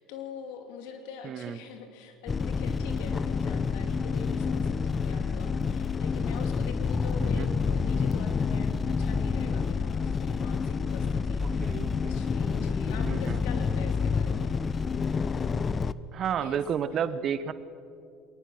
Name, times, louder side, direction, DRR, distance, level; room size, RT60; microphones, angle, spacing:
voice 1, 0.0-14.5 16.4-16.6 16.9-17.2, left 5 dB, 75° left, 6 dB, 2.5 m, -43 dB
voice 2, 1.2-1.6 7.2-7.5 11.4-12.2 13.0-13.4 16.1-17.5, right 8 dB, 50° right, 15 dB, 0.9 m, -32 dB
sound 1, 2.3-15.9, left 5 dB, 30° left, 0.6 m, -28 dB
21.5 x 19.0 x 6.4 m, 2.7 s
hypercardioid pair, 75°, 0 cm